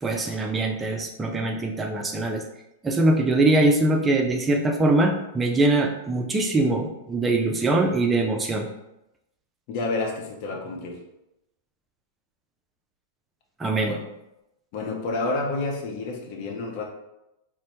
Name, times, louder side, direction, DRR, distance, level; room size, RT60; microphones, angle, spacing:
voice 1, 0.0-2.4 2.8-8.7 13.6-14.0, right 2 dB, 15° right, 2 dB, 0.4 m, -22 dB
voice 2, 9.7-11.0 13.8-14.0 14.7-16.8, left 3 dB, 45° left, 0 dB, 0.7 m, -29 dB
4.1 x 2.1 x 2.7 m, 0.89 s
figure-of-eight pair, 100°, 0 cm